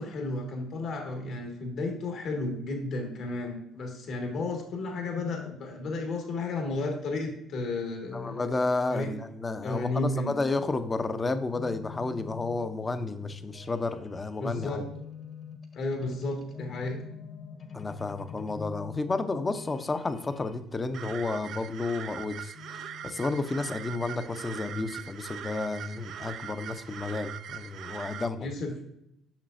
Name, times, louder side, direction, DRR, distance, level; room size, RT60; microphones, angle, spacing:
voice 1, 0.0-8.5 8.9-9.1 9.6-10.3 14.4-14.8 15.7-17.0 28.4-28.8, left 2 dB, 65° left, 1 dB, 1.8 m, -33 dB
voice 2, 8.1-14.8 17.7-22.5 23.0-28.5, left 3 dB, 25° left, 10 dB, 0.7 m, -31 dB
sound 1, 11.5-20.6 22.5-24.5 26.0-27.9, left 7 dB, 45° left, 1.4 m, -46 dB
sound 2, 20.9-28.3, right 9 dB, 65° right, 0.3 m, -41 dB
7.3 x 6.1 x 2.6 m, 0.77 s
supercardioid pair, 70°, 0 cm